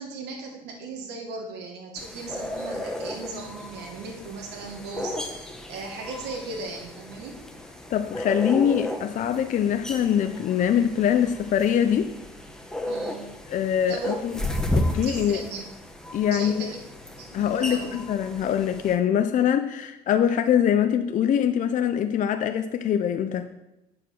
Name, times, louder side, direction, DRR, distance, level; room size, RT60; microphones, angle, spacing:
voice 1, 0.0-7.4 12.9-13.3 13.9-14.2 15.0-15.7 16.3-16.8 17.2-18.0, right 3 dB, 80° right, 0 dB, 1.5 m, -37 dB
sound 1, 2.0-19.0, left 1 dB, 5° left, 1.1 m, -34 dB
voice 2, 7.9-12.1 13.5-14.4 14.7-15.4 16.1-16.7 17.3-23.5, left 9 dB, 50° left, 7 dB, 0.5 m, -23 dB
8.9 x 4.8 x 6.1 m, 0.94 s
cardioid pair, 110°, 17 cm